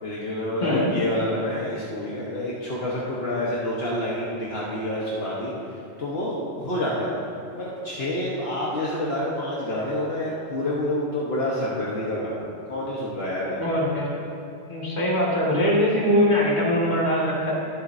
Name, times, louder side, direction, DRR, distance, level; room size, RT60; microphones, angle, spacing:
voice 1, 0.0-5.5 6.0-7.1 7.6-13.7, left 1 dB, 65° left, -6 dB, 1.4 m, -28 dB
voice 2, 0.6-0.9 13.6-14.1 14.7-17.5, equal, 40° left, -5 dB, 2.0 m, -22 dB
21.5 x 7.2 x 2.7 m, 2.7 s
omnidirectional pair, 1.1 m